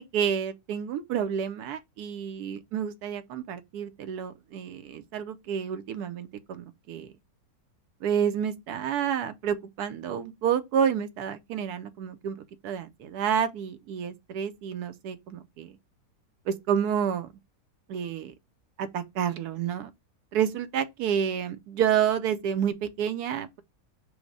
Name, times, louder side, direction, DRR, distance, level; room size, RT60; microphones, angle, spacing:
voice 1, 0.0-7.1 8.0-15.7 16.5-17.3 17.9-18.3 18.8-19.9 20.3-23.6, right 8 dB, 85° right, 1.2 m, -29 dB
5.0 x 2.1 x 4.7 m
omnidirectional pair, 1.7 m